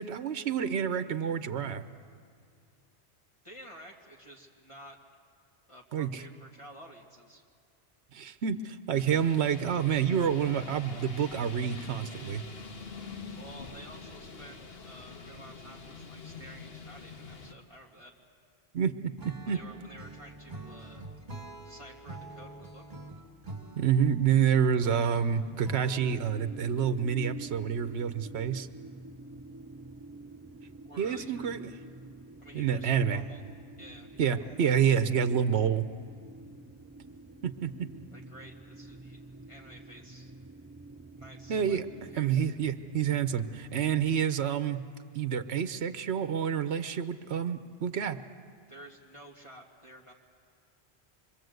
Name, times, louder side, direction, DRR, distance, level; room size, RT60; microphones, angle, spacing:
voice 1, 0.0-1.8 5.9-6.2 8.1-12.4 18.7-19.6 23.8-28.7 31.0-31.7 32.5-33.2 34.2-35.9 37.4-37.9 41.5-41.9 42.2-44.8 45.1-48.2, right 8 dB, 80° right, 10 dB, 1.1 m, -28 dB
voice 2, 3.4-5.0 5.7-7.4 13.4-18.1 19.4-21.0 21.6-22.8 30.8-31.5 32.4-33.4 33.8-34.7 38.1-40.3 41.2-41.8 42.1-42.5 48.7-50.1, right 1 dB, 30° left, -2 dB, 2.3 m, -51 dB
sound 1, 8.9-17.5, left 4 dB, 65° left, 1.6 m, -45 dB
Acoustic guitar / Strum, 19.2-26.4, right 2 dB, 45° right, 2.2 m, -46 dB
sound 2, 26.0-44.2, right 2 dB, 20° right, 0.4 m, -48 dB
26.0 x 24.0 x 7.9 m, 2.3 s
omnidirectional pair, 1.1 m